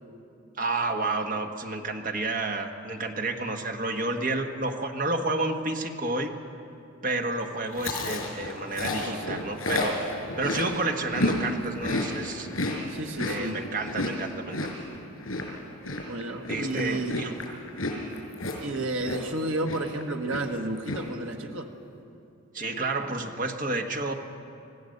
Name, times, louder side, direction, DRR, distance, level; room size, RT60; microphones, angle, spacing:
voice 1, 0.6-6.3 7.0-10.0 10.4-12.5 13.2-14.6 16.5-17.3 22.5-24.1, right 2 dB, 40° right, 4 dB, 1.4 m, -30 dB
Chewing mastication, 7.7-11.4 11.7-19.4 19.7-20.0 20.3-21.0, left 2 dB, 75° left, 5.4 m, -31 dB
voice 2, 8.9-9.4 12.9-13.6 16.0-17.2 18.6-21.7, right 2 dB, 70° right, 4 dB, 1.4 m, -32 dB
25.5 x 16.5 x 6.6 m, 2.6 s
head